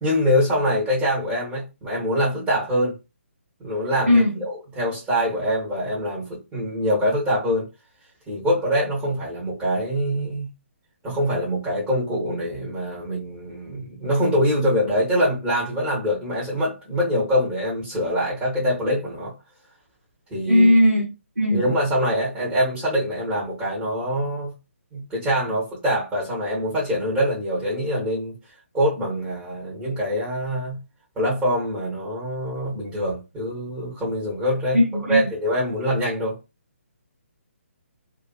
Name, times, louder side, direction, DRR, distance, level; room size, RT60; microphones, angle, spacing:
voice 1, 0.0-2.9 3.6-7.6 8.3-10.5 11.0-19.3 20.3-20.7 21.5-24.5 24.9-28.3 28.7-30.8 31.2-34.8 35.1-36.3, equal, 10° right, 1.2 m, -24 dB
voice 2, 4.1-4.4 20.5-21.1 21.4-21.7 34.7-35.2, left 1 dB, 80° right, 0.7 m, -17 dB
2.8 x 2.6 x 2.3 m
figure-of-eight pair, 140°, 7 cm